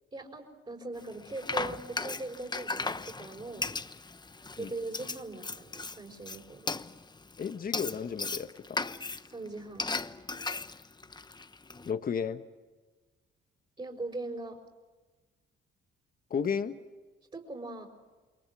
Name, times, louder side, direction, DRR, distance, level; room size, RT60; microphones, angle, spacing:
voice 1, 0.1-3.7 4.6-6.7 9.3-9.9 13.8-14.6 17.3-17.9, right 2 dB, 30° right, -2 dB, 5.4 m, -40 dB
Frying (food), 1.0-11.9, left 3 dB, 20° left, 1.1 m, -37 dB
voice 2, 7.4-8.8 11.9-12.4 16.3-16.7, left 6 dB, 45° left, 9 dB, 1.5 m, -33 dB
29.0 x 22.5 x 6.3 m, 1.3 s
cardioid pair, 90°, 20 cm